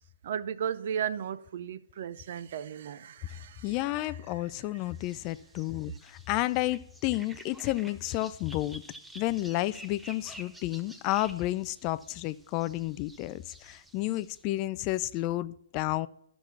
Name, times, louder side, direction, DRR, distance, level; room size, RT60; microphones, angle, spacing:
voice 1, 0.2-3.7, right 8 dB, 50° right, 0.6 m, -35 dB
voice 2, 3.6-8.8 9.1-16.1, left 17 dB, 30° left, 0.4 m, -31 dB
sound 1, 4.9-14.4, right 1 dB, 5° right, 0.7 m, -51 dB
12.0 x 6.1 x 5.7 m
hypercardioid pair, 150°, 0 cm